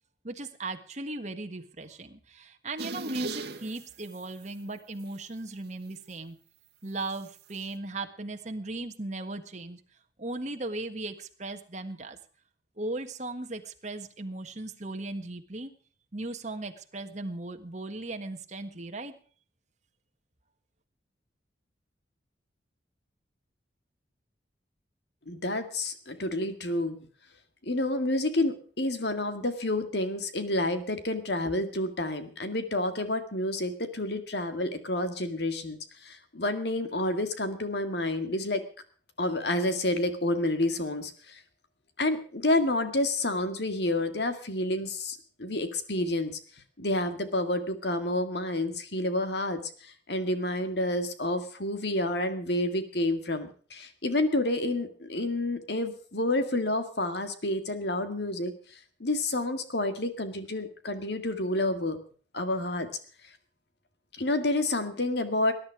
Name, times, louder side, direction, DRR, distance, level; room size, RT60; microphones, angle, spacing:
voice 1, 0.2-6.4 6.8-9.8 10.2-12.2 12.8-15.7 16.1-19.1, right 2 dB, 40° right, 6 dB, 1.6 m, -37 dB
sound 1, 2.8-4.5 5.0-5.2 7.1-7.7, right 3 dB, 60° right, 1.6 m, -38 dB
voice 2, 25.3-27.0 27.6-38.6 39.2-41.4 42.0-46.3 46.8-58.5 59.0-62.0 62.3-62.9 64.2-65.5, left 1 dB, 60° left, 9 dB, 2.1 m, -29 dB
20.0 x 10.5 x 4.8 m, 0.43 s
head